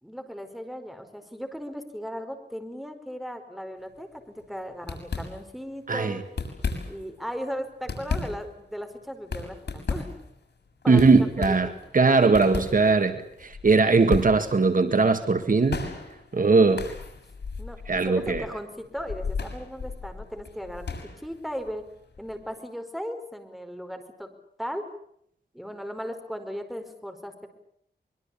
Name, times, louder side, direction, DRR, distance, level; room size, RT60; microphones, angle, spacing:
voice 1, 0.0-6.2 6.9-10.1 10.8-11.1 11.4-11.7 17.6-17.8 18.0-20.9 21.2-21.8 22.2-24.3 24.6-24.8 25.5-27.5, equal, ahead, 6 dB, 4.8 m, -37 dB
sound 1, 3.9-4.2 4.4-4.5 4.8-5.7 6.2-7.2 7.6-22.5, left 4 dB, 90° left, 7.0 m, -35 dB
voice 2, 5.9-6.2 10.9-15.9 16.3-16.9 17.9-18.5, right 4 dB, 55° right, 8 dB, 2.0 m, -20 dB
24.5 x 23.5 x 8.7 m, 0.71 s
wide cardioid pair, 105°, 17 cm